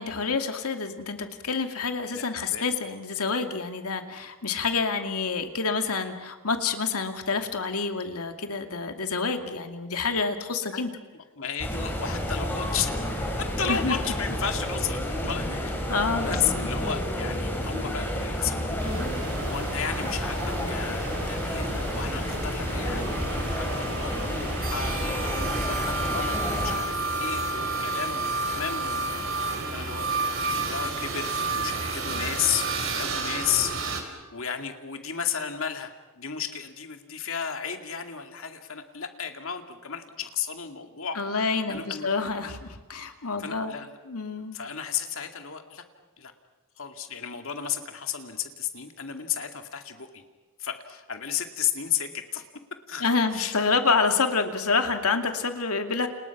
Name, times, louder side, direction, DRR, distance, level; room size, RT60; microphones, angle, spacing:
voice 1, 0.0-10.9 13.7-14.0 15.9-16.4 41.1-43.8 44.1-44.6 53.0-56.1, left 4 dB, 85° left, 6 dB, 2.4 m, -28 dB
voice 2, 2.1-2.7 11.4-12.9 13.4-15.6 16.1-19.0 19.4-29.0 29.3-30.1 30.5-41.2 41.7-42.1 43.4-44.0 44.5-45.8 46.2-46.3 46.8-50.2 50.6-53.6, left 8 dB, 65° left, 6 dB, 2.4 m, -33 dB
sound 1, 11.6-26.8, equal, 10° left, 4.7 m, -30 dB
sound 2, 18.8-34.0, right 3 dB, 65° right, 3.7 m, -31 dB
30.0 x 29.0 x 6.0 m, 1.2 s
head